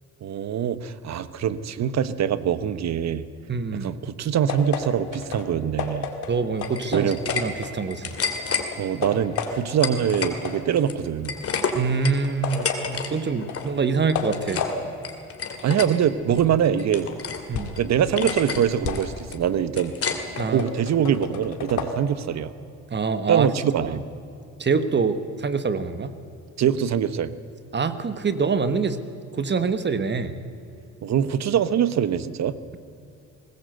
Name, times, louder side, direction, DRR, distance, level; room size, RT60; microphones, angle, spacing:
voice 1, 0.2-3.2 3.8-6.1 6.9-7.2 8.8-11.3 15.6-17.1 17.7-19.9 20.5-22.5 23.3-24.0 26.6-27.3 31.0-32.6, right 9 dB, 60° right, 14 dB, 1.1 m, -23 dB
voice 2, 3.5-3.9 6.3-8.2 11.7-14.7 17.5-17.7 20.4-20.7 22.9-23.5 23.8-24.0 24.6-26.1 27.7-29.0 29.3-30.4, right 5 dB, 35° right, 11 dB, 1.3 m, -25 dB
sound 1, 4.5-8.1 8.4-9.8 10.1-17.9 18.3-21.9, left 5 dB, 75° left, 2.4 m, -34 dB
sound 2, 6.6-7.4 7.8-8.7 9.4-10.4 10.7-13.1 13.4-13.7 14.1-14.7 15.0-15.9 16.3-17.4 17.8-17.9 18.2-18.6 19.0-20.4, left 5 dB, 50° left, 2.7 m, -29 dB
20.0 x 19.0 x 7.9 m, 2.6 s
cardioid pair, 90°, 30 cm